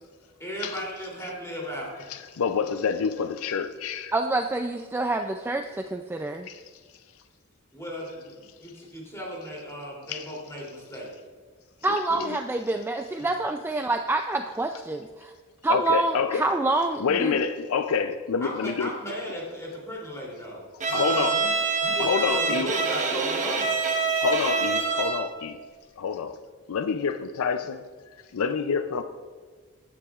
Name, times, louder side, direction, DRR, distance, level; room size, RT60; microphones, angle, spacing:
voice 1, 0.4-2.1 7.7-11.1 13.2-13.3 18.4-21.5 21.8-23.8, equal, 15° left, 2.9 m, -36 dB
voice 2, 2.1-4.1 6.5-6.6 10.1-10.3 12.2-12.4 15.7-16.4 17.0-18.9 20.9-21.4 22.0-22.7 24.2-25.6 26.0-26.4 26.7-27.8 28.3-29.0, left 6 dB, 70° left, 0.4 m, -27 dB
voice 3, 4.1-6.5 11.8-15.3 15.6-17.4, right 2 dB, 10° right, 0.3 m, -27 dB
Bowed string instrument, 20.8-25.4, right 5 dB, 35° right, 1.1 m, -26 dB
14.5 x 9.7 x 2.4 m
head